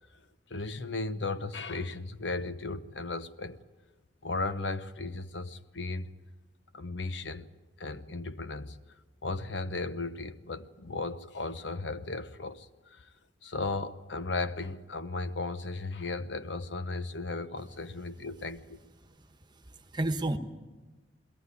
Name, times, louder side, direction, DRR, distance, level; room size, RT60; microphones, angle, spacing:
voice 1, 0.5-3.6 4.2-6.1 6.7-7.5 7.8-8.8 9.2-13.1 13.4-18.8, left 3 dB, 85° left, 0.9 m, -36 dB
voice 2, 19.0-20.4, right 2 dB, 25° right, 1.2 m, -33 dB
21.5 x 17.0 x 9.6 m
head